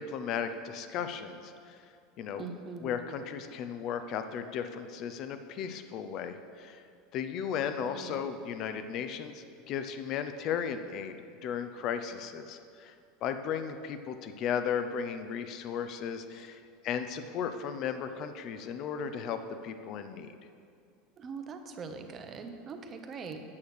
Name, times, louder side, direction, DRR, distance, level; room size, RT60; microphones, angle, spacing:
voice 1, 0.0-1.8 2.2-2.5 2.8-6.8 7.1-11.2 11.4-12.9 13.2-20.4, left 7 dB, 45° left, 9 dB, 0.7 m, -35 dB
voice 2, 2.3-3.0 7.8-8.2 21.2-23.4, right 5 dB, 30° right, 6 dB, 0.8 m, -42 dB
8.6 x 6.4 x 6.6 m, 2.4 s
supercardioid pair, 140°, 0 cm